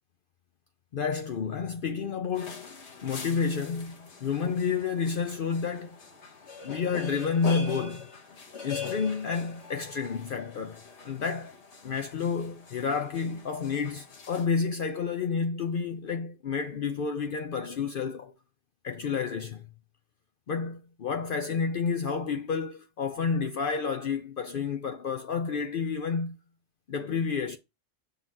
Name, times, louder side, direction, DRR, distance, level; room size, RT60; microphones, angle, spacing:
voice 1, 0.9-6.0 6.6-8.1 8.6-11.5 11.8-18.3 18.8-19.6 20.5-26.4 26.9-27.6, left 5 dB, 55° left, 0.8 m, -30 dB
sound 1, 2.4-14.5, left 5 dB, 85° left, 1.7 m, -43 dB
7.5 x 4.0 x 4.0 m
omnidirectional pair, 1.1 m